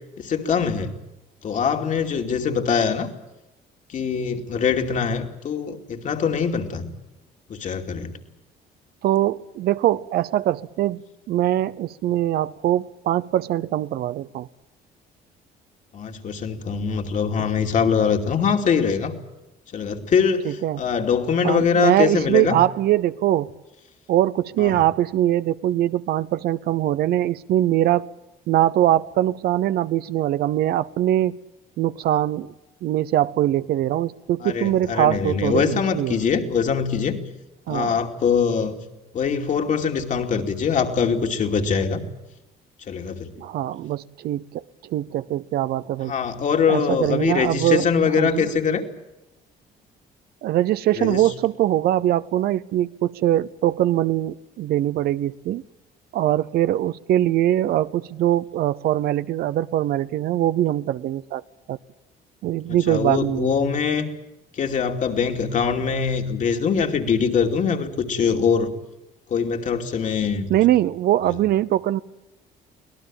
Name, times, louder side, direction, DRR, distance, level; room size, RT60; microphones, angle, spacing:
voice 1, 0.2-0.9 1.4-3.1 3.9-6.9 7.5-8.1 15.9-19.1 19.7-22.6 24.6-24.8 34.4-37.2 37.7-38.8 39.1-42.0 42.9-43.3 46.1-48.8 51.0-51.2 62.8-64.1 64.5-68.7 69.3-70.5, left 6 dB, 50° left, 2.7 m, -23 dB
voice 2, 9.0-14.5 20.4-20.8 21.4-23.5 24.1-28.1 28.5-31.4 31.8-32.5 32.8-36.2 37.7-38.0 43.4-46.1 46.7-47.9 48.2-48.5 50.4-55.6 56.1-61.4 61.7-61.8 62.4-63.5 70.5-72.0, right 13 dB, 70° right, 0.7 m, -22 dB
24.5 x 18.0 x 8.9 m
cardioid pair, 110°, 17 cm